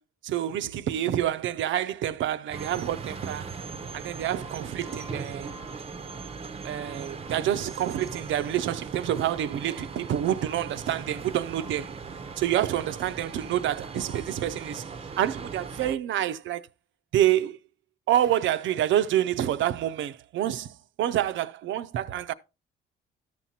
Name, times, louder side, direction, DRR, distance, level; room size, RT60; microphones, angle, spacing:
voice 1, 0.2-3.5 3.9-5.5 6.6-11.9 12.4-14.9 15.2-16.6 17.1-17.6 18.1-22.3, right 11 dB, 70° right, 0.5 m, -27 dB
sound 1, 2.5-16.0, right 4 dB, 30° right, 0.6 m, -39 dB
13.0 x 5.9 x 2.8 m
cardioid pair, 90°, 20 cm